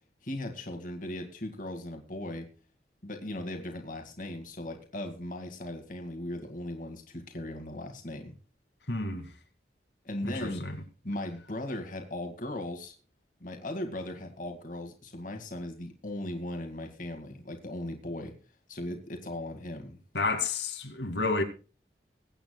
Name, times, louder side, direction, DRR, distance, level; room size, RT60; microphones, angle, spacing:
voice 1, 0.2-2.5 3.0-8.3 10.0-10.6 11.0-12.9 13.4-18.3 18.7-20.0, left 1 dB, 50° left, 2.2 m, -38 dB
voice 2, 8.9-9.3 10.2-10.8 20.1-21.4, left 3 dB, 85° left, 2.3 m, -30 dB
22.5 x 9.0 x 2.3 m
head